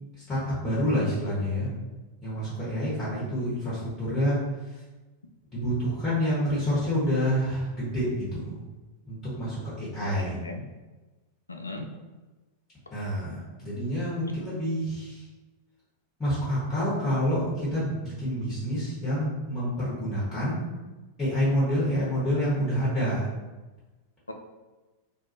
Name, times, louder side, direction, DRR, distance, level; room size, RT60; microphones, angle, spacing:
voice 1, 0.3-1.7 2.2-4.8 5.5-8.6 9.1-10.4 12.9-15.2 16.2-20.7 21.2-23.3, equal, 20° left, -8 dB, 1.1 m, -28 dB
voice 2, 10.0-10.6 11.5-11.9 14.3-14.4 24.3-24.4, left 2 dB, 80° left, 4 dB, 0.3 m, -38 dB
2.5 x 2.3 x 2.6 m, 1.2 s
figure-of-eight pair, 90°, 0 cm